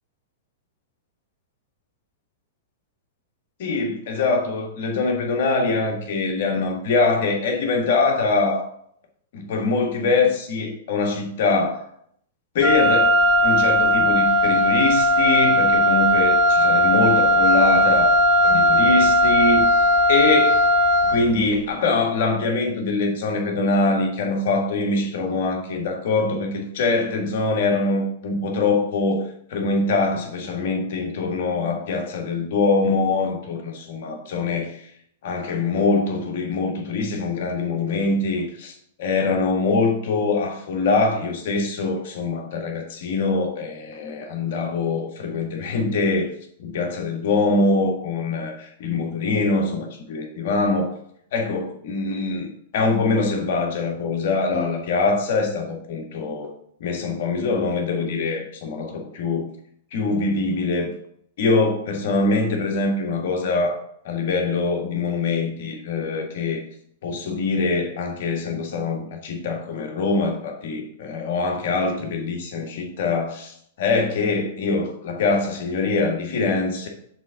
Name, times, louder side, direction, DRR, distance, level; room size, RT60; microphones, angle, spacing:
voice 1, 3.6-8.6 9.3-11.8 12.5-18.1 18.4-20.6 21.0-34.9 35.2-38.7 39.0-46.3 46.6-50.9 51.3-56.5 56.8-59.5 59.9-60.9 61.4-63.8 64.0-66.6 67.0-76.9, left 3 dB, 65° left, 2 dB, 1.7 m, -23 dB
Wind instrument woodwind instrument, 12.6-21.3, equal, 15° left, 1.0 m, -17 dB
7.1 x 3.8 x 5.7 m, 0.67 s
hypercardioid pair, 130°, 0 cm